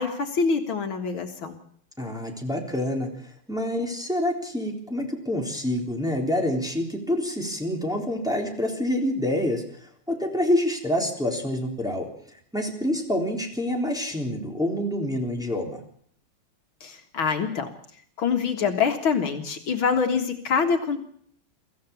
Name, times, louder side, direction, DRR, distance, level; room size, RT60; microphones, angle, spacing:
voice 1, 0.0-1.6 16.8-17.7 18.2-21.0, left 5 dB, 65° left, 4 dB, 2.6 m, -25 dB
voice 2, 2.0-12.1 12.5-15.8, left 1 dB, ahead, 0 dB, 3.6 m, -27 dB
24.0 x 15.0 x 7.1 m, 0.62 s
omnidirectional pair, 2.4 m